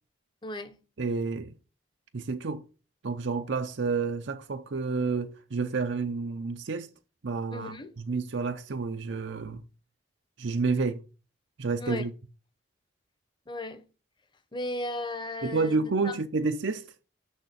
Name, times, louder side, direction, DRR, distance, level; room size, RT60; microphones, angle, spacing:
voice 1, 0.4-0.7 7.5-7.9 11.8-12.1 13.5-13.9 14.5-15.8 16.0-16.2, left 1 dB, 25° left, 0.9 m, -35 dB
voice 2, 1.0-1.5 2.1-2.6 3.0-6.9 7.2-9.6 10.4-11.0 11.6-12.1 15.4-16.9, right 4 dB, 65° right, 0.6 m, -30 dB
6.5 x 6.4 x 6.7 m
head